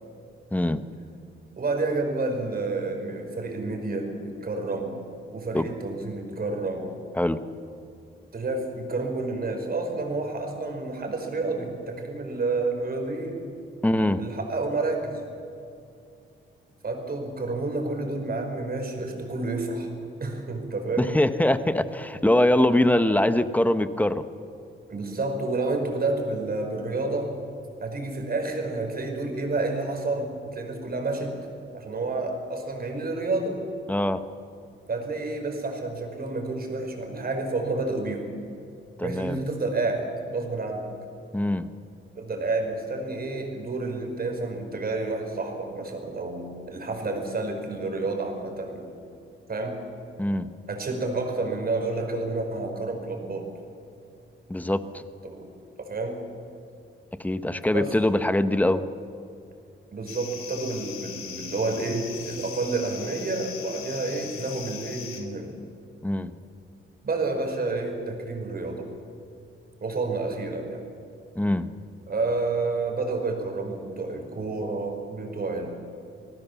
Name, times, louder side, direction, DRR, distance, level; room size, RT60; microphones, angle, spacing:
voice 1, 0.5-0.8 5.5-5.6 7.2-7.4 13.8-14.2 21.0-24.2 33.9-34.2 39.0-39.4 41.3-41.7 50.2-50.5 54.5-55.0 57.2-58.8 66.0-66.3 71.3-71.7, left 1 dB, 5° left, 11 dB, 1.1 m, -23 dB
voice 2, 1.6-5.0 5.3-6.9 8.3-13.4 14.2-15.2 16.8-19.9 20.2-21.1 24.9-27.3 27.8-31.3 31.7-33.6 34.9-38.3 39.0-40.9 42.1-48.9 49.5-49.8 50.7-53.5 55.2-55.5 55.8-56.2 57.7-57.9 59.9-65.5 67.0-68.9 69.8-70.8 72.1-75.7, right 3 dB, 45° right, 3 dB, 5.0 m, -29 dB
sound 1, 60.1-65.2, left 7 dB, 90° left, 3.5 m, -39 dB
28.0 x 19.0 x 7.2 m, 2.5 s
cardioid pair, 105°, 21 cm